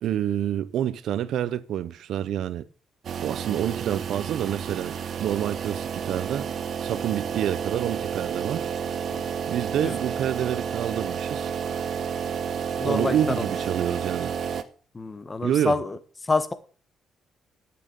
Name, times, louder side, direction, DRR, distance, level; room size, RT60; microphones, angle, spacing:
voice 1, 0.0-2.7 3.2-6.5 6.8-8.7 9.5-11.5 12.8-14.4 15.4-15.8, right 10 dB, 75° right, 0.7 m, -28 dB
sound 1, 3.0-14.6, right 7 dB, 60° right, 1.0 m, -31 dB
voice 2, 12.8-13.4 14.9-16.0 16.2-16.5, left 3 dB, 25° left, 1.3 m, -27 dB
8.9 x 8.8 x 6.8 m
cardioid pair, 90°, 0 cm